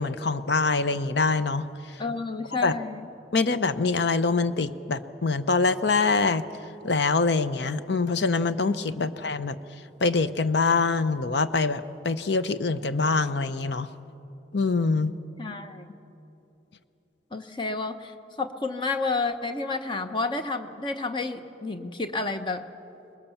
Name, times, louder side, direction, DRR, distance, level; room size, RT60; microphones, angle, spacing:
voice 1, 0.0-1.7 2.6-2.7 3.3-6.4 6.8-9.6 10.0-13.9 14.5-15.1, left 4 dB, 60° left, 12 dB, 0.7 m, -24 dB
voice 2, 2.0-3.1 15.4-15.9 17.3-22.6, left 3 dB, 25° left, 8 dB, 0.8 m, -30 dB
22.5 x 20.0 x 7.0 m, 2.9 s
head